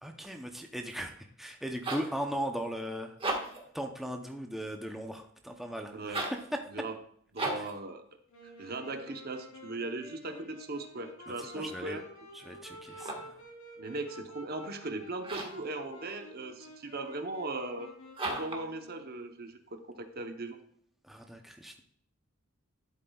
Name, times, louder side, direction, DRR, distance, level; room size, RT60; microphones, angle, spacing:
voice 1, 0.0-3.2 3.7-6.2 6.5-6.6 7.6-7.7 11.5-12.0 12.3-13.4 21.0-21.8, equal, ahead, 3 dB, 0.7 m, -38 dB
sound 1, 1.5-2.2 3.1-3.7 6.0-6.5 7.3-7.8 12.8-13.4 15.2-15.7 18.1-18.7, right 2 dB, 25° right, 1.6 m, -35 dB
voice 2, 5.9-6.2 6.7-7.0 7.3-8.0 8.4-12.0 13.8-17.9 18.3-20.6, right 2 dB, 45° right, 7 dB, 0.8 m, -38 dB
Wind instrument woodwind instrument, 8.3-19.4, left 1 dB, 75° left, 3.5 m, -50 dB
11.5 x 8.1 x 2.3 m, 0.63 s
head